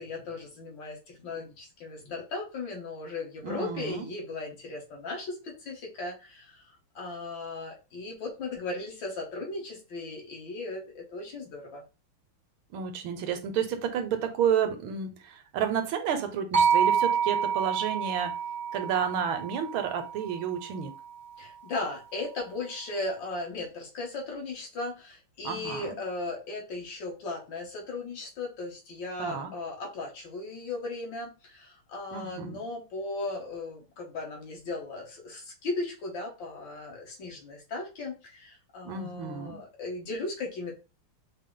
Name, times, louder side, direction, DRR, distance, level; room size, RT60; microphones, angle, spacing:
voice 1, 0.0-11.8 21.4-40.7, left 3 dB, 60° left, 1.9 m, -37 dB
voice 2, 3.4-4.1 12.7-18.4 18.7-20.9 25.4-26.0 29.2-29.5 32.1-32.6 38.8-39.6, right 8 dB, 75° right, 1.5 m, -31 dB
sound 1, 16.5-20.7, right 7 dB, 60° right, 0.5 m, -28 dB
5.5 x 2.1 x 3.7 m
omnidirectional pair, 2.4 m